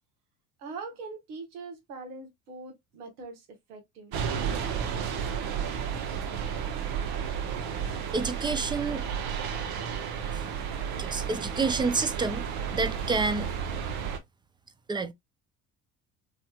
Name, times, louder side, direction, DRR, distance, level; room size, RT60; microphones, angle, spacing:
voice 1, 0.6-4.2, right 4 dB, 80° right, 1.2 m, -42 dB
sound 1, 4.1-14.2, right 7 dB, 55° right, 0.8 m, -32 dB
voice 2, 8.1-9.0 11.0-12.4 12.7-13.5 14.9-15.1, right 4 dB, 10° right, 0.4 m, -28 dB
3.1 x 2.6 x 2.2 m
hypercardioid pair, 60°, 44 cm